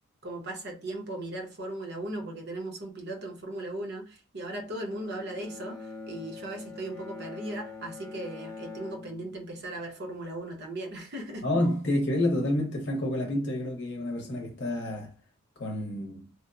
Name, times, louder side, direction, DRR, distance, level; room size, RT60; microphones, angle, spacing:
voice 1, 0.2-11.5, right 1 dB, 50° right, 0.8 m, -37 dB
Bowed string instrument, 4.8-10.0, left 3 dB, 15° left, 0.6 m, -44 dB
voice 2, 11.4-15.1 15.6-16.3, left 1 dB, 55° left, 0.7 m, -29 dB
2.9 x 2.1 x 2.3 m
head